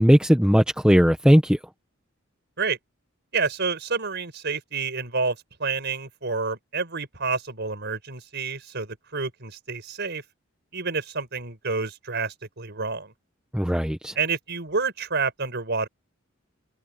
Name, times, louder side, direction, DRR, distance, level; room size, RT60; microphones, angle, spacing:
voice 1, 0.0-1.6 13.5-14.1, equal, 5° right, 1.2 m, -18 dB
voice 2, 3.3-10.2 10.7-13.1 14.1-15.9, right 4 dB, 55° right, 5.0 m, -29 dB
head